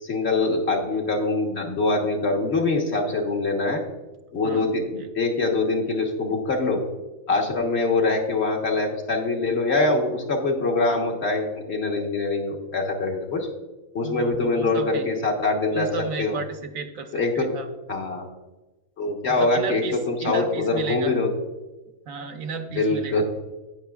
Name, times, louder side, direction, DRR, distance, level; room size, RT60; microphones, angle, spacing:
voice 1, 0.0-3.8 4.3-6.8 7.3-13.5 13.9-16.4 17.1-17.5 17.9-18.3 19.0-21.3 22.7-23.2, left 3 dB, 50° left, 0 dB, 1.5 m, -24 dB
voice 2, 14.0-15.1 15.7-17.7 19.3-21.1 22.1-23.2, right 4 dB, 75° right, 6 dB, 1.2 m, -33 dB
17.0 x 6.0 x 2.3 m, 1.1 s
omnidirectional pair, 1.4 m